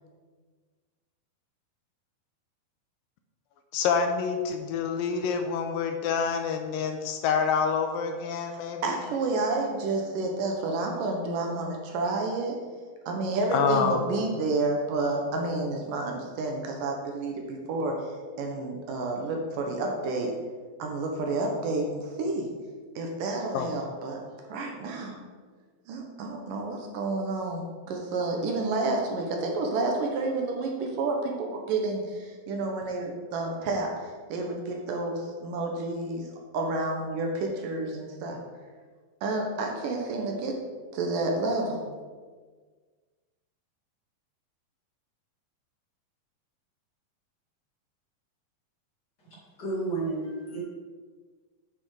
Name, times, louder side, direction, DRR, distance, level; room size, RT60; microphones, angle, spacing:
voice 1, 3.7-9.0 13.5-14.0 23.5-23.7, left 6 dB, 80° left, 6 dB, 2.3 m, -27 dB
voice 2, 8.5-12.6 13.1-17.9 18.4-20.3 20.8-22.5 23.0-24.2 24.5-25.2 25.9-36.3 36.5-38.4 39.2-40.6 40.9-41.8, right 2 dB, 70° right, 2 dB, 2.6 m, -30 dB
voice 3, 49.6-50.6, right 3 dB, 35° left, -6 dB, 2.3 m, -31 dB
8.1 x 6.9 x 4.8 m, 1.5 s
omnidirectional pair, 4.2 m